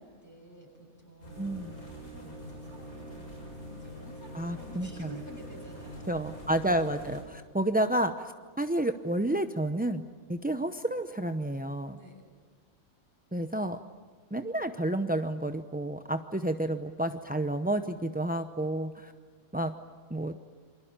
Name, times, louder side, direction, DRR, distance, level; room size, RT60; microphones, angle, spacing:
voice 1, 0.0-6.4 11.9-12.2, equal, 10° left, 1 dB, 6.9 m, -51 dB
sound 1, 1.2-7.2, equal, 80° left, 7.2 m, -44 dB
voice 2, 1.4-1.7 4.3-5.1 6.1-8.3 8.6-10.0 10.3-12.0 13.3-13.8 14.3-19.1 19.5-19.7 20.1-20.4, right 1 dB, 10° right, 8 dB, 0.5 m, -30 dB
28.0 x 23.5 x 8.8 m, 1.5 s
omnidirectional pair, 1.5 m